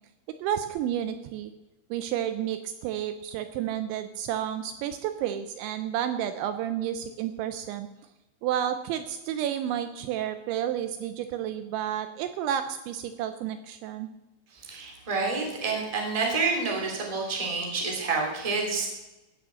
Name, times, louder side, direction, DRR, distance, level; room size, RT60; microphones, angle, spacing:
voice 1, 0.4-1.5 1.9-7.9 8.4-14.1, right 10 dB, 80° right, 9 dB, 2.8 m, -31 dB
voice 2, 14.5-18.9, right 4 dB, 10° right, -1 dB, 1.9 m, -28 dB
16.5 x 6.9 x 7.5 m, 1.0 s
omnidirectional pair, 5.6 m